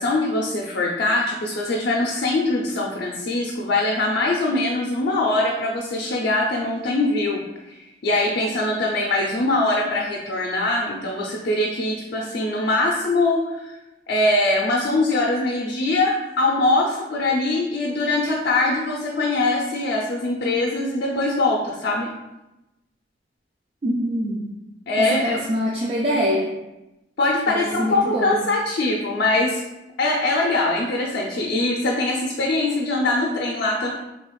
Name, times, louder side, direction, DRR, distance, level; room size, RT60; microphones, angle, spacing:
voice 1, 0.0-7.4 7.7-13.7 14.1-22.1 24.9-25.4 27.2-29.6 30.0-33.9, left 2 dB, 65° left, -2 dB, 0.4 m, -22 dB
voice 2, 23.8-24.4 25.0-26.5 27.5-28.3, equal, 35° right, -3 dB, 0.3 m, -24 dB
3.2 x 2.3 x 3.1 m, 0.97 s
head